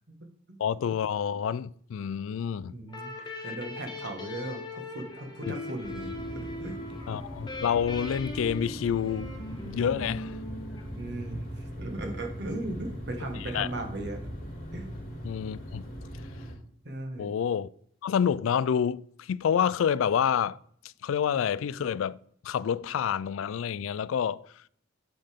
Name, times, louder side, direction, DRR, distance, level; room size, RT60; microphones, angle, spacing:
voice 1, 0.6-2.7 5.5-5.6 7.1-9.4 9.6-10.4 13.4-13.7 15.2-15.9 17.2-17.7 18.0-20.6 21.0-24.5, left 8 dB, 85° left, 0.3 m, -28 dB
voice 2, 2.7-6.8 10.9-14.2 14.7-14.9 16.8-17.3, right 1 dB, 60° right, 1.7 m, -37 dB
sound 1, 2.9-11.4, left 2 dB, 20° left, 1.3 m, -40 dB
sound 2, 5.8-16.5, equal, 50° left, 3.5 m, -40 dB
8.6 x 7.7 x 3.6 m
head